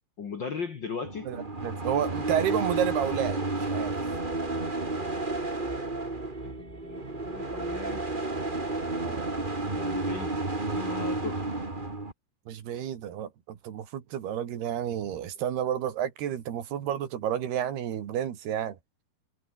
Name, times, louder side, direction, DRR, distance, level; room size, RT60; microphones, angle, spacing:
voice 1, 0.2-1.3 6.4-8.0 9.7-10.3 10.7-11.4, left 5 dB, 55° left, 1.2 m, -37 dB
sound 1, 1.0-12.1, right 2 dB, 15° right, 2.2 m, -31 dB
voice 2, 1.3-4.0 9.0-9.3 12.5-18.8, right 10 dB, 75° right, 4.5 m, -31 dB
omnidirectional pair, 4.6 m